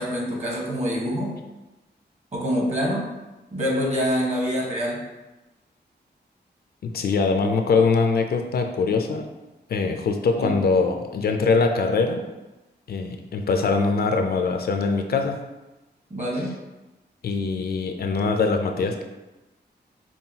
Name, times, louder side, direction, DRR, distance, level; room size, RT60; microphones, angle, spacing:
voice 1, 0.0-1.3 2.3-3.0 3.5-5.0 10.4-10.6 16.1-16.5, equal, 40° right, -4 dB, 1.2 m, -25 dB
voice 2, 6.8-9.3 9.7-12.3 12.9-15.4 17.2-19.0, left 4 dB, 60° left, 4 dB, 0.4 m, -22 dB
5.5 x 2.3 x 2.7 m, 1.1 s
wide cardioid pair, 125°, 18 cm